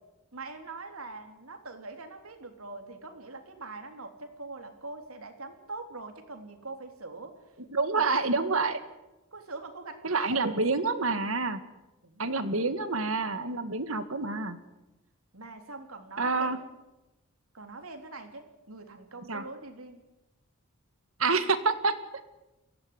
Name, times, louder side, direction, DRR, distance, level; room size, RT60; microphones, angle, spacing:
voice 1, 0.3-7.6 7.9-8.0 9.3-10.8 12.0-12.6 15.3-16.6 17.5-20.0, right 3 dB, 90° right, 6 dB, 3.4 m, -43 dB
voice 2, 7.7-8.8 10.0-11.6 12.2-14.6 16.2-16.6 19.3-19.4 21.2-22.0, right 3 dB, 70° right, 11 dB, 1.9 m, -27 dB
23.5 x 16.5 x 9.7 m, 1.0 s
head